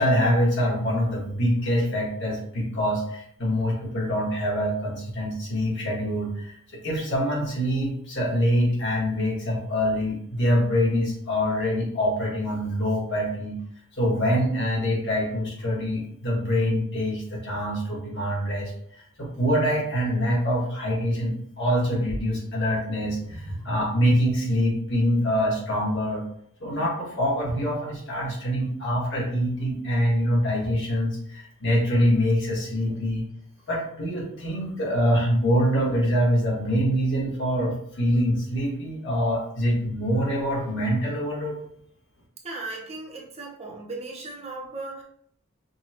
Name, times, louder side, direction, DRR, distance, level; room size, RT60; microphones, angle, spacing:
voice 1, 0.0-13.6 14.0-18.7 19.2-26.2 26.6-33.2 33.7-41.6, equal, 55° left, -4 dB, 1.5 m, -25 dB
voice 2, 42.4-45.0, right 2 dB, 30° right, -1 dB, 0.6 m, -36 dB
5.4 x 2.3 x 2.9 m, 0.66 s
head